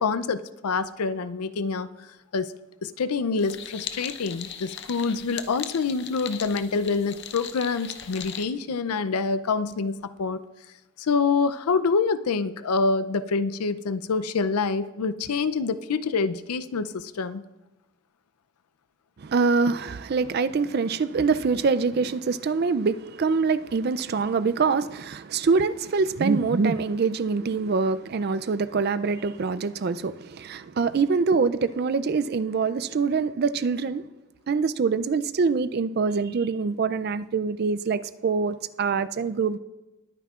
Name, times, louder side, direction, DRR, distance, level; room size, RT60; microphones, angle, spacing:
voice 1, 0.0-1.9 2.3-2.5 2.8-10.4 11.0-17.4, left 4 dB, 90° left, 0.5 m, -26 dB
sound 1, 3.4-8.4, left 9 dB, 50° left, 0.7 m, -39 dB
voice 2, 19.2-34.0 34.5-39.6, right 4 dB, 45° right, 0.3 m, -24 dB
20.5 x 9.3 x 2.4 m
head